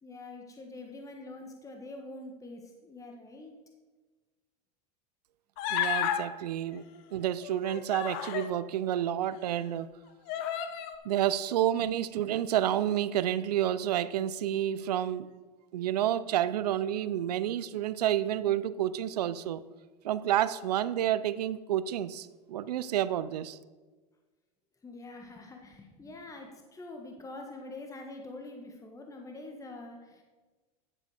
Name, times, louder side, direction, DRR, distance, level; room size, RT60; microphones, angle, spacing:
voice 1, 0.0-3.5 24.8-30.2, left 2 dB, 15° left, 2 dB, 1.5 m, -45 dB
Human voice, 5.6-6.2 7.4-8.5 9.3-9.4 10.3-11.0, left 10 dB, 55° left, 1.1 m, -32 dB
voice 2, 5.7-6.8 7.1-9.9 11.0-15.3 15.7-19.6 20.0-23.6, right 11 dB, 85° right, 16 dB, 0.5 m, -29 dB
10.5 x 7.4 x 4.9 m, 1.3 s
hypercardioid pair, 100°, 20 cm